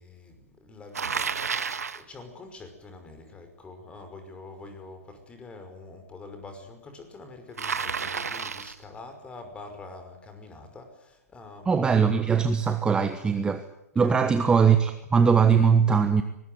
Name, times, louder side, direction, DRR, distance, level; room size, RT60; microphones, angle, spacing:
voice 1, 0.0-1.4 1.9-11.9 14.0-14.4, left 3 dB, 15° left, 7 dB, 5.5 m, -45 dB
Bicycle, 0.9-2.0 7.6-8.8, right 6 dB, 80° right, 1.6 m, -30 dB
voice 2, 11.6-13.6 13.9-16.2, right 6 dB, 10° right, 9 dB, 1.3 m, -21 dB
23.0 x 20.5 x 9.5 m, 0.87 s
hypercardioid pair, 120°, 8 cm